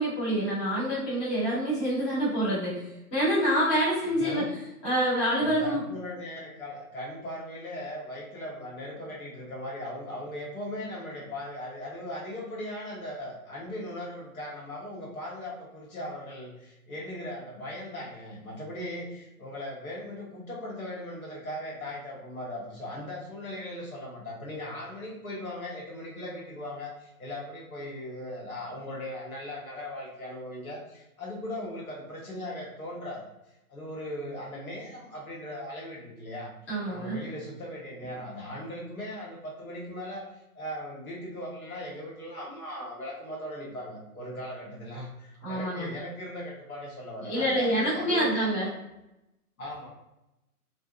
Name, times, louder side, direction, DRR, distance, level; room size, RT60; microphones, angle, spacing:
voice 1, 0.0-4.4 4.8-5.8 36.7-37.2 45.4-45.9 47.2-48.7, equal, 20° left, -9 dB, 0.9 m, -27 dB
voice 2, 4.0-4.5 5.4-33.3 33.7-36.5 36.9-40.3 40.5-48.7 49.6-49.9, left 1 dB, 65° left, -3 dB, 1.1 m, -38 dB
2.6 x 2.1 x 2.4 m, 0.90 s
hypercardioid pair, 155°, 46 cm